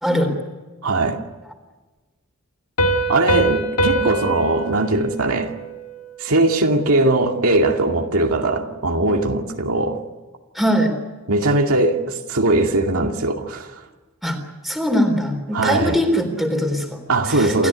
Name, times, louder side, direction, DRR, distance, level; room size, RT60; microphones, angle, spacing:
voice 1, 0.0-0.4 10.5-11.0 14.2-14.4 14.6-17.7, equal, ahead, 5 dB, 3.7 m, -21 dB
voice 2, 0.8-1.2 3.1-5.5 6.2-10.0 11.3-13.7 15.5-16.0 17.1-17.7, right 2 dB, 70° right, 2 dB, 2.4 m, -20 dB
Piano, 2.8-6.2, right 1 dB, 90° left, 2.0 m, -23 dB
28.5 x 14.5 x 9.7 m, 1.3 s
head